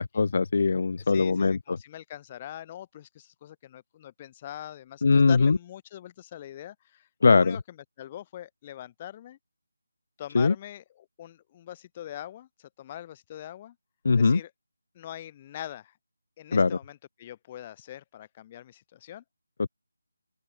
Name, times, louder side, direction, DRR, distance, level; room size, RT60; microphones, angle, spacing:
voice 1, 0.0-1.8 5.0-5.6 7.2-7.6 10.3-10.5 14.0-14.4 16.5-16.7 19.6-19.7, left 4 dB, 35° left, 0.7 m, -21 dB
voice 2, 1.0-7.6 8.0-9.4 10.2-13.8 14.2-14.5 14.9-15.9 16.4-19.2, left 12 dB, 15° left, 1.0 m, -42 dB
open air
figure-of-eight pair, 180°, 0 cm